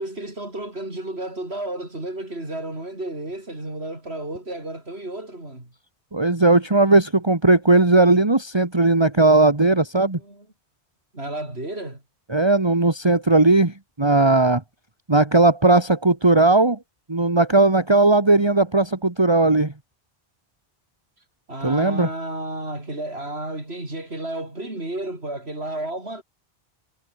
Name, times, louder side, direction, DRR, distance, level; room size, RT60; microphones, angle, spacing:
voice 1, 0.0-5.7 10.1-10.5 11.1-12.0 21.5-26.2, right 1 dB, 75° right, 6.8 m, -32 dB
voice 2, 6.1-10.2 12.3-14.6 15.1-16.8 17.1-19.7 21.6-22.1, right 2 dB, 25° right, 2.0 m, -17 dB
omnidirectional pair, 1.1 m